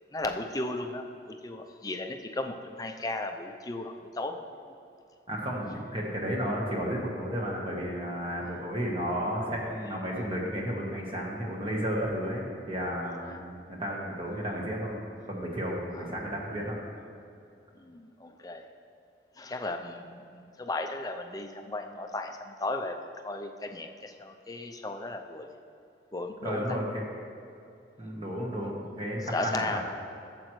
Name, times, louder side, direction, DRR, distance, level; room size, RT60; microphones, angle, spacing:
voice 1, 0.1-4.4 8.4-8.5 13.3-13.4 15.9-16.1 17.7-18.7 19.4-23.0 23.2-25.5 26.1-26.6 29.3-29.8, left 2 dB, 20° left, 5 dB, 0.5 m, -35 dB
voice 2, 5.3-15.0 15.2-16.8 26.4-27.0 28.0-29.8, equal, 30° right, -2 dB, 1.1 m, -33 dB
13.0 x 7.6 x 3.1 m, 2.6 s
head